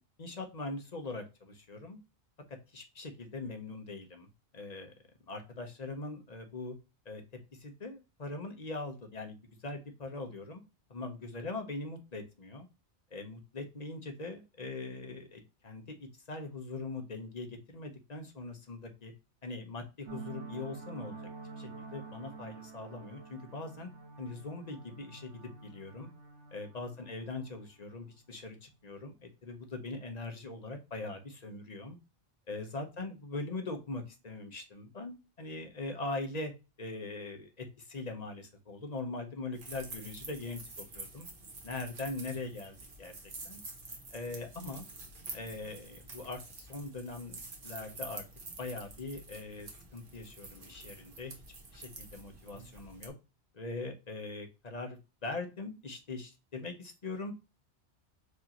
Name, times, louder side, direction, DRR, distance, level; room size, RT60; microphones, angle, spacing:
voice 1, 0.2-2.0 2.7-4.3 4.5-4.9 5.3-6.7 7.0-7.2 7.6-9.4 9.6-10.6 10.9-12.7 13.1-19.1 19.4-21.1 21.6-23.9 24.2-26.1 26.5-29.1 29.4-32.0 32.5-36.5 36.8-41.3 41.6-43.1 43.4-43.6 44.1-44.9 45.3-48.2 48.6-51.3 51.7-53.1 53.5-57.3, left 3 dB, 40° left, 4 dB, 0.9 m, -41 dB
sound 1, 20.1-28.5, right 4 dB, 90° right, 1.2 m, -48 dB
sound 2, 39.5-53.1, right 3 dB, 50° right, 1.2 m, -48 dB
4.8 x 2.8 x 2.9 m, 0.27 s
omnidirectional pair, 1.2 m